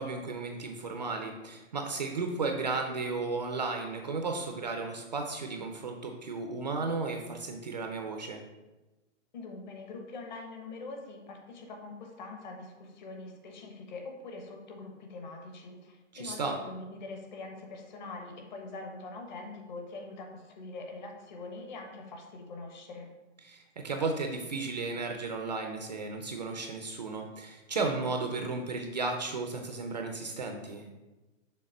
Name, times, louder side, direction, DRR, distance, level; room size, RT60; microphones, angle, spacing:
voice 1, 0.0-8.4 16.1-16.6 23.4-30.8, right 3 dB, 35° right, 4 dB, 0.5 m, -34 dB
voice 2, 9.3-23.1, left 3 dB, 35° left, 2 dB, 1.2 m, -43 dB
6.4 x 3.5 x 5.3 m, 1.1 s
hypercardioid pair, 175°, 38 cm